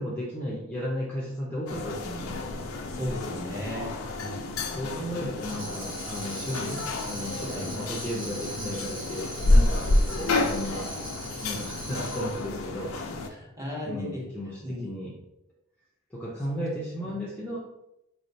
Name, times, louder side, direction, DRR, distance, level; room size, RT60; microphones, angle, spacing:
voice 1, 0.0-2.4 4.2-10.9 11.4-12.9 13.9-15.1 16.1-17.6, equal, 5° left, -6 dB, 0.7 m, -34 dB
sound 1, 1.7-13.3, left 2 dB, 80° left, 0.6 m, -29 dB
voice 2, 2.9-4.0 7.5-7.7 13.3-14.3 14.6-15.0 16.5-16.7 16.9-17.1, left 1 dB, 15° right, -4 dB, 1.2 m, -36 dB
Tambourine, 5.4-12.5, right 1 dB, 45° right, 1.1 m, -40 dB
4.7 x 3.2 x 2.7 m, 0.85 s
head